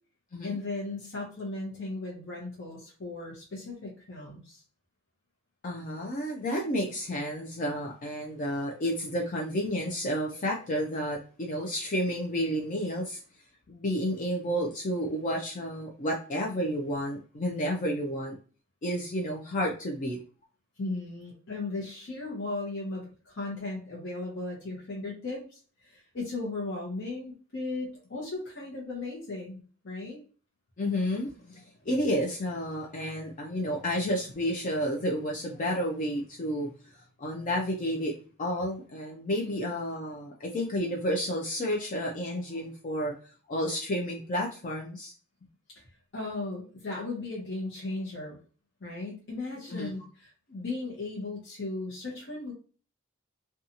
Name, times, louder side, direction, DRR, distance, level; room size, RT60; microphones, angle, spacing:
voice 1, 0.4-4.6 20.8-29.6 29.8-30.2 39.4-39.6 46.1-48.4 48.8-52.5, left 2 dB, 60° left, -4 dB, 0.8 m, -36 dB
voice 2, 5.6-13.2 13.7-18.4 18.8-20.2 30.8-36.7 37.2-38.1 38.4-43.1 43.5-45.1 49.7-49.9, equal, 40° left, 0 dB, 0.4 m, -31 dB
2.6 x 2.3 x 2.7 m, 0.38 s
head